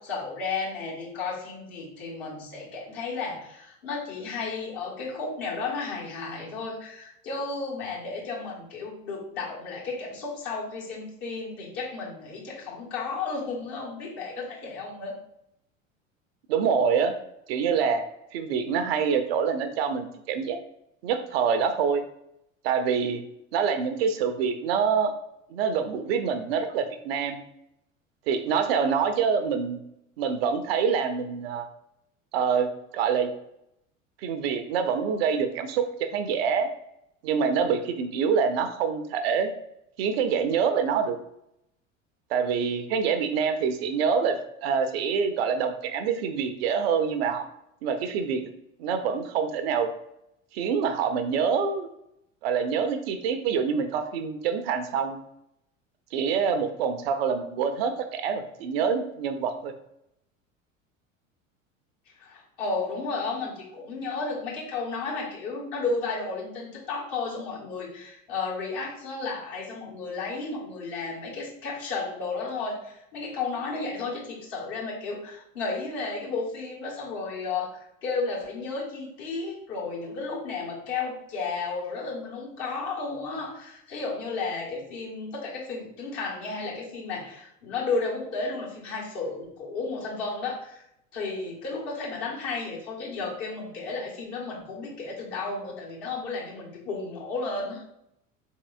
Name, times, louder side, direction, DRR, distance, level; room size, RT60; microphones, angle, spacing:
voice 1, 0.0-15.2 62.2-90.8 91.1-97.8, left 4 dB, 50° left, -4 dB, 1.5 m, -33 dB
voice 2, 16.5-17.1 17.5-18.0 18.3-20.6 21.0-22.0 22.6-23.2 23.5-25.1 25.5-27.4 28.3-29.8 30.2-31.7 32.3-32.7 32.9-33.3 34.2-36.7 37.2-39.5 40.0-41.2 42.3-44.4 44.6-47.5 47.8-48.4 48.8-49.9 50.5-51.9 52.4-55.2 56.1-59.7, right 6 dB, 50° right, 8 dB, 0.5 m, -26 dB
4.1 x 3.5 x 2.4 m, 0.78 s
figure-of-eight pair, 70°, 39 cm